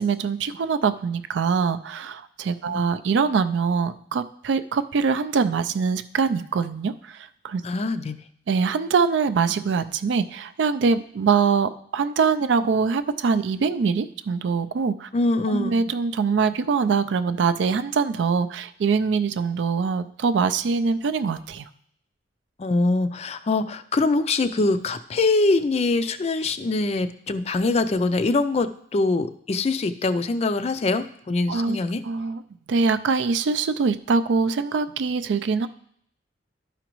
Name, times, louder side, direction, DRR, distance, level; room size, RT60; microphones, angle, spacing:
voice 1, 0.0-7.6 8.5-15.1 15.5-21.7 31.5-31.8 32.0-32.4 32.7-35.7, right 5 dB, 70° right, 12 dB, 0.4 m, -23 dB
voice 2, 7.6-8.2 15.1-15.8 22.6-32.0, left 3 dB, 35° left, 10 dB, 0.3 m, -23 dB
12.0 x 5.0 x 3.0 m, 0.68 s
head